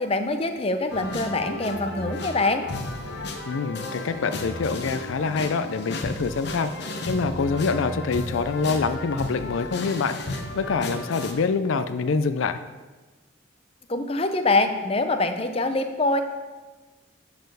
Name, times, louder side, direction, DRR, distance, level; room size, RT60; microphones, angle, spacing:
voice 1, 0.0-2.7 13.9-16.2, left 2 dB, 30° left, 8 dB, 0.6 m, -24 dB
sound 1, 0.9-11.3, left 2 dB, 55° left, 0.9 m, -33 dB
voice 2, 3.5-10.2 10.6-12.6, left 4 dB, 75° left, 10 dB, 0.4 m, -26 dB
10.5 x 4.2 x 6.8 m, 1.3 s
head